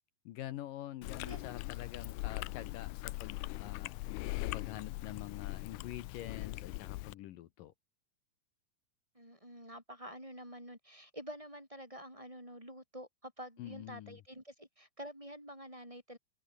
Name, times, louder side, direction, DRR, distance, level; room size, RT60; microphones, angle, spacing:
voice 1, 0.3-7.7 13.6-14.2, left 13 dB, 75° left, 2.6 m, -46 dB
Chewing mastication, 1.0-7.1, left 20 dB, 90° left, 1.7 m, -41 dB
voice 2, 1.1-1.5 9.1-16.2, equal, 10° right, 7.2 m, -48 dB
open air
omnidirectional pair, 4.1 m